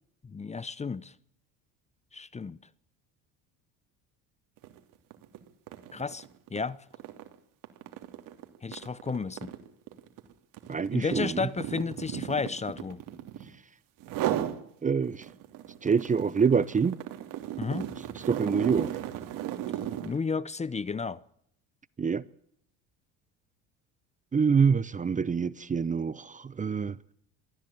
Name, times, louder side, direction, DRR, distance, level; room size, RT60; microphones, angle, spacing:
voice 1, 0.2-1.1 2.1-2.6 5.9-6.2 6.5-6.8 8.6-9.5 10.9-13.0 17.6-17.9 20.0-21.2, left 4 dB, 20° left, 0.8 m, -32 dB
sound 1, 4.6-4.8 5.1-13.6 14.0-14.6 15.0-20.2, right 12 dB, 65° right, 3.0 m, -35 dB
voice 2, 10.7-11.4 14.8-15.3 15.8-17.0 18.3-18.9 22.0-22.2 24.3-26.9, right 6 dB, 20° right, 0.8 m, -26 dB
23.5 x 14.0 x 8.6 m
supercardioid pair, 100°, 36 cm